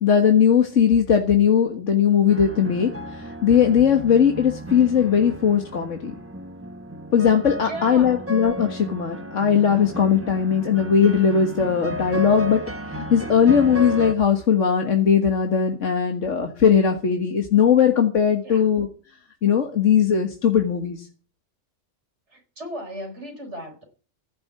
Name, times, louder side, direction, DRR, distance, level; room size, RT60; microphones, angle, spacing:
voice 1, 0.0-2.9 3.2-6.1 7.1-12.6 13.0-18.9 19.4-21.0, left 7 dB, 85° left, 2.0 m, -19 dB
sound 1, 2.3-14.2, equal, 10° right, 1.0 m, -33 dB
voice 2, 7.6-8.2 18.4-18.7 22.3-23.8, equal, 70° right, 4.7 m, -36 dB
16.0 x 7.1 x 9.6 m
omnidirectional pair, 1.2 m